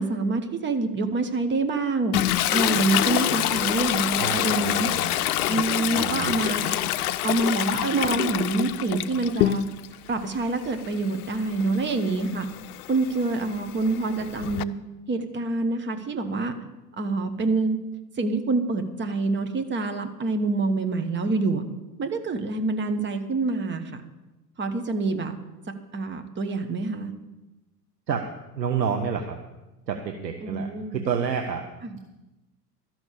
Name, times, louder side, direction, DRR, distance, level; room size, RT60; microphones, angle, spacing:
voice 1, 0.0-2.1 2.5-4.9 5.5-6.8 7.2-9.7 10.1-12.5 12.9-14.7 15.1-16.5 17.0-17.8 18.2-21.6 22.0-24.0 24.6-25.3 25.9-27.1 30.4-31.0 31.8-32.0, right 3 dB, 20° right, 7 dB, 1.3 m, -26 dB
Toilet flush, 2.1-9.9 10.3-14.6, left 13 dB, 65° left, 0.6 m, -27 dB
voice 2, 4.2-5.1 5.9-6.5 28.1-28.2 28.6-29.3 29.9-31.6, right 7 dB, 80° right, 4 dB, 1.1 m, -29 dB
12.5 x 6.3 x 8.3 m, 1.0 s
figure-of-eight pair, 80°, 49 cm